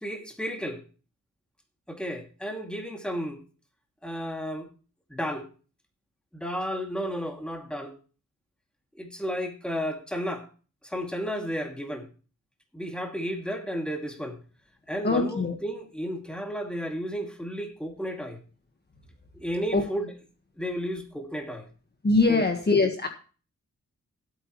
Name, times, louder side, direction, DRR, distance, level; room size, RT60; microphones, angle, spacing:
voice 1, 0.0-0.8 1.9-3.4 4.0-4.7 5.1-5.5 6.3-7.9 8.9-10.5 10.8-12.1 12.7-14.4 14.9-18.4 19.3-20.1 20.6-21.7 22.3-22.4, equal, 5° left, 2.5 m, -33 dB
voice 2, 15.0-15.5 19.7-19.8 22.0-23.1, left 3 dB, 35° left, 1.5 m, -22 dB
16.0 x 8.4 x 3.1 m
wide cardioid pair, 95°, 30 cm